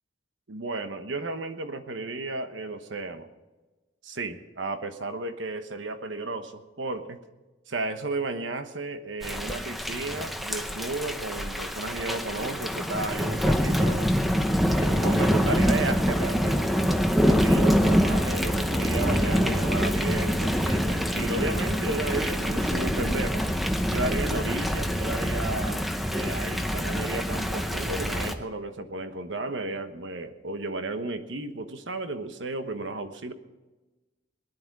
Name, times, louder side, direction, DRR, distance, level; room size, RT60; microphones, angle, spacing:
voice 1, 0.5-3.3 4.0-7.2 7.7-14.1 14.7-16.8 17.2-23.5 23.9-25.8 26.1-33.3, right 2 dB, 75° right, 9 dB, 1.1 m, -33 dB
Thunder / Rain, 9.2-28.3, equal, ahead, 0.7 m, -25 dB
sound 1, 14.4-21.5, left 1 dB, 50° left, 1.4 m, -46 dB
19.5 x 11.0 x 4.8 m, 1.1 s
head